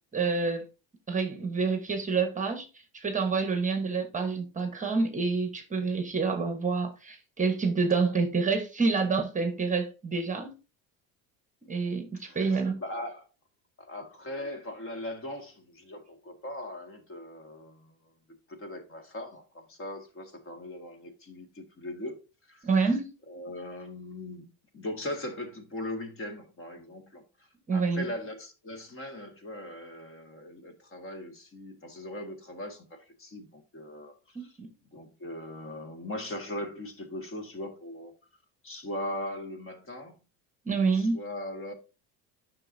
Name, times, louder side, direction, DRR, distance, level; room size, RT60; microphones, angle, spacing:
voice 1, 0.1-0.6 1.1-10.6 11.7-12.8 22.6-23.1 27.7-28.0 34.3-34.7 40.7-41.2, right 4 dB, 20° right, 1.1 m, -28 dB
voice 2, 12.2-13.3 13.8-18.1 18.5-22.7 23.3-34.6 34.8-38.1 38.6-40.2 40.7-41.7, left 1 dB, 30° left, 1.9 m, -40 dB
9.8 x 6.0 x 2.7 m
supercardioid pair, 115°, 40 cm